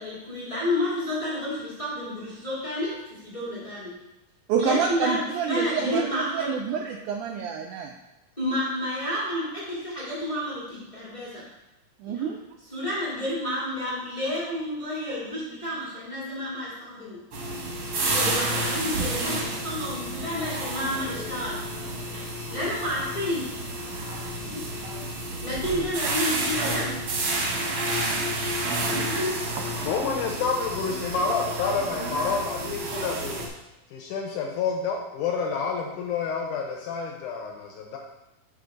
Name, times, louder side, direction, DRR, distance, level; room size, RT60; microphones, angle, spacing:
voice 1, 0.0-3.9 4.6-5.2 5.5-6.5 8.4-11.4 12.0-12.3 12.7-17.2 18.0-21.6 22.5-23.5 24.4-24.6 25.4-26.9, left 1 dB, 25° left, -7 dB, 0.8 m, -30 dB
voice 2, 4.5-7.9 12.0-12.4 25.7-25.9 29.6-29.7, right 7 dB, 90° right, 2 dB, 1.7 m, -28 dB
sound 1, 17.3-33.5, right 1 dB, 65° right, 1.2 m, -30 dB
voice 3, 29.8-33.4 33.9-38.0, left 5 dB, 75° left, 1 dB, 1.9 m, -28 dB
6.9 x 3.6 x 5.2 m, 0.98 s
omnidirectional pair, 4.1 m